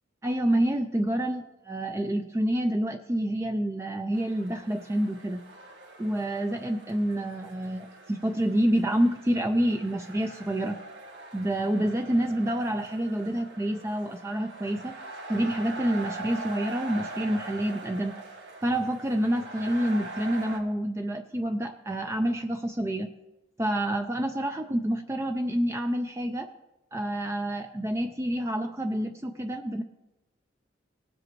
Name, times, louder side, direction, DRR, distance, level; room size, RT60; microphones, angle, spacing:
voice 1, 0.2-5.4 6.0-10.8 11.3-14.9 15.3-18.2 18.6-23.1 23.6-26.5 26.9-29.8, right 1 dB, 15° right, 5 dB, 0.4 m, -28 dB
sound 1, 4.1-20.6, right 2 dB, 75° right, 1.7 m, -43 dB
18.5 x 7.7 x 3.0 m, 0.98 s
head